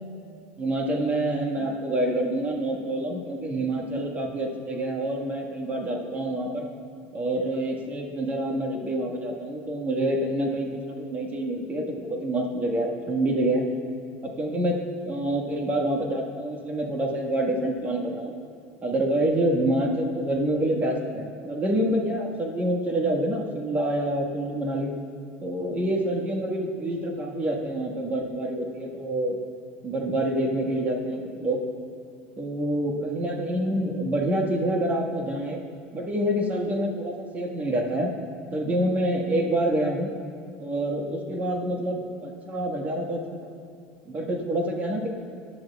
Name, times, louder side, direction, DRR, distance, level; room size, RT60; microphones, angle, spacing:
voice 1, 0.6-6.7 7.1-13.6 14.2-18.3 18.8-24.9 25.4-29.4 29.8-31.6 32.4-35.6 35.9-38.1 38.5-40.1 40.6-43.5 44.0-45.1, right 1 dB, 30° right, 1 dB, 1.6 m, -27 dB
18.5 x 11.0 x 2.4 m, 2.3 s
supercardioid pair, 110°, 5 cm